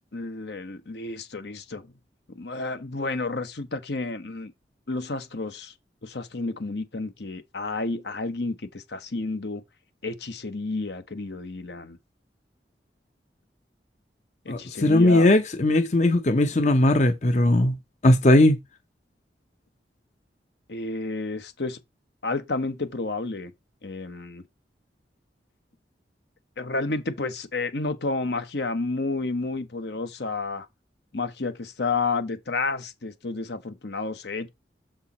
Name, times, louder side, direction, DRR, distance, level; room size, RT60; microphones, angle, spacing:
voice 1, 0.1-1.9 2.3-4.5 4.9-5.7 6.0-9.6 10.0-12.0 14.4-15.3 20.7-21.8 22.2-23.5 23.8-24.4 26.6-30.7 31.1-34.5, left 3 dB, 75° left, 1.0 m, -31 dB
voice 2, 14.5-17.8 18.0-18.6, left 1 dB, 40° left, 0.7 m, -19 dB
7.0 x 4.5 x 4.2 m
head